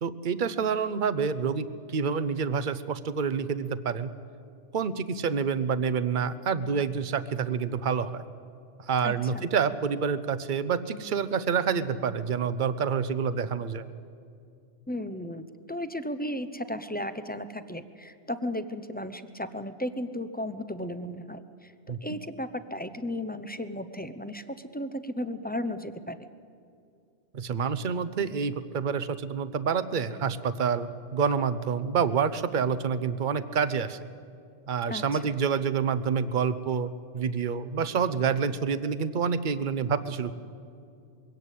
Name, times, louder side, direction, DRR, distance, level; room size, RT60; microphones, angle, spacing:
voice 1, 0.0-4.1 4.7-8.2 8.9-13.9 21.9-22.0 27.3-34.1 34.7-40.3, right 6 dB, 45° right, 14 dB, 0.9 m, -28 dB
voice 2, 9.0-9.4 14.9-26.3 34.9-35.3, left 1 dB, 10° left, 11 dB, 0.6 m, -35 dB
22.5 x 17.0 x 8.4 m, 2.5 s
omnidirectional pair, 1.2 m